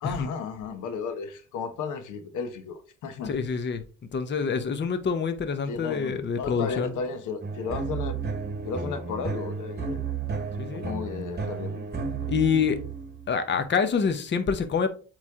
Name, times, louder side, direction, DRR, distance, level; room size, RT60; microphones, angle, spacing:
voice 1, 0.0-3.3 5.7-8.2 8.6-10.0 10.7-11.9, left 5 dB, 80° left, 1.0 m, -34 dB
voice 2, 3.2-3.8 4.1-6.9 10.6-10.8 12.3-12.8 13.3-14.9, left 6 dB, 35° left, 0.8 m, -26 dB
sound 1, 7.4-13.4, right 5 dB, 35° right, 1.2 m, -33 dB
8.1 x 3.2 x 3.6 m
cardioid pair, 90°, 30 cm